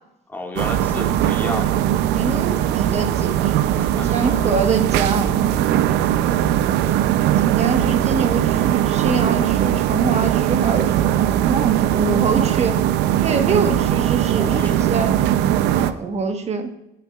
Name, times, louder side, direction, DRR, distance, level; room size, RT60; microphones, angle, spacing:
voice 1, 0.3-1.8 3.8-4.5 5.5-5.6 6.3-6.4 14.4-14.9, left 1 dB, 10° left, 2 dB, 1.8 m, -31 dB
sound 1, 0.6-15.9, right 11 dB, 90° right, 0.5 m, -19 dB
voice 2, 2.1-3.7 4.1-5.5 6.8-7.0 7.4-12.8 13.2-15.2 15.7-16.7, right 4 dB, 40° right, 6 dB, 1.2 m, -25 dB
17.0 x 9.0 x 2.4 m, 0.89 s
cardioid pair, 110°, 17 cm